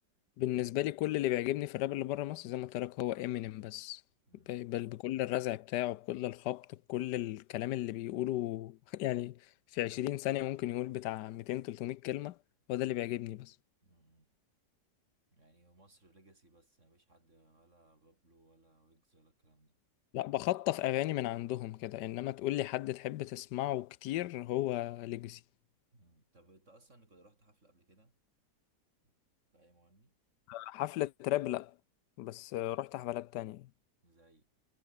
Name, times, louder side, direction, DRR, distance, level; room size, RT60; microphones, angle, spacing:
voice 1, 0.4-4.0 4.5-9.5 9.7-12.4 12.7-13.5 20.1-25.4 30.5-31.7 32.2-33.7, left 15 dB, 90° left, 1.2 m, -35 dB
voice 2, 4.3-4.6 12.7-12.9 13.8-14.4 15.3-19.8 25.9-28.2 29.0-29.1 29.5-30.2 34.0-34.5, right 2 dB, 45° right, 6.4 m, -65 dB
omnidirectional pair, 1.8 m